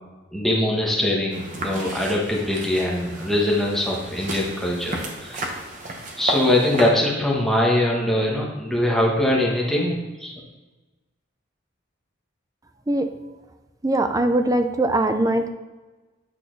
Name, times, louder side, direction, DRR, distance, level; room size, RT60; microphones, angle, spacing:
voice 1, 0.3-5.4 6.2-10.3, left 1 dB, ahead, -3 dB, 1.2 m, -22 dB
sound 1, 1.3-6.9, right 1 dB, 40° right, 1.0 m, -33 dB
voice 2, 13.8-15.5, right 1 dB, 15° right, 7 dB, 0.4 m, -21 dB
8.4 x 4.1 x 3.9 m, 1.2 s
head